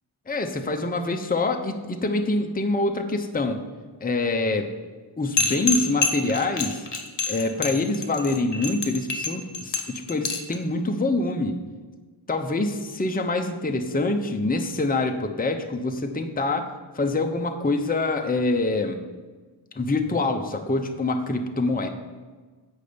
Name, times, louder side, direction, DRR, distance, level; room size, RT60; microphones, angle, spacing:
voice 1, 0.3-3.6 4.0-4.7 5.2-6.9 7.3-11.5 12.3-16.6 16.9-19.0 19.7-21.9, left 2 dB, 20° left, 5 dB, 0.7 m, -25 dB
sound 1, 5.4-10.6, left 4 dB, 55° left, 1.0 m, -27 dB
8.4 x 5.3 x 5.1 m, 1.4 s
wide cardioid pair, 50°, 50 cm